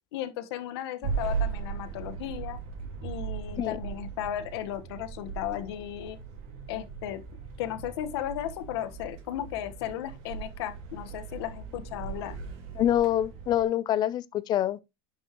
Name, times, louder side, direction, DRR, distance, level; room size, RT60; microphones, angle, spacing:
voice 1, 0.1-2.6 3.0-6.2 6.7-7.2 7.6-12.3, left 11 dB, 75° left, 1.4 m, -35 dB
sound 1, 1.0-13.6, right 6 dB, 55° right, 2.6 m, -38 dB
voice 2, 12.8-14.8, left 12 dB, 30° left, 0.6 m, -26 dB
11.0 x 5.5 x 3.0 m
supercardioid pair, 145°, 13 cm